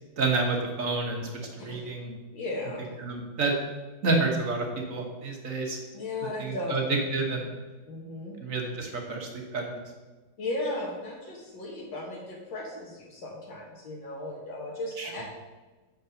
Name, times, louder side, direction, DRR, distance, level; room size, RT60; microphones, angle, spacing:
voice 1, 0.2-2.1 3.0-3.5 4.0-5.8 6.2-7.4 8.4-9.8 15.0-15.2, right 3 dB, 50° right, 1 dB, 1.4 m, -29 dB
voice 2, 2.3-2.9 5.9-6.8 7.9-8.4 10.4-15.2, left 2 dB, 70° left, -2 dB, 2.1 m, -36 dB
6.8 x 5.4 x 6.4 m, 1.2 s
omnidirectional pair, 2.2 m